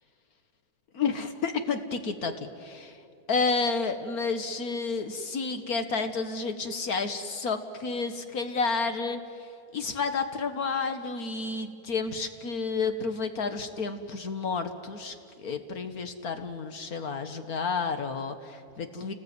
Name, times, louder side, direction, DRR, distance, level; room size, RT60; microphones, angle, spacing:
voice 1, 0.9-3.0 3.3-19.1, left 4 dB, 70° left, 8 dB, 1.8 m, -31 dB
29.0 x 20.0 x 9.5 m, 2.8 s
omnidirectional pair, 1.7 m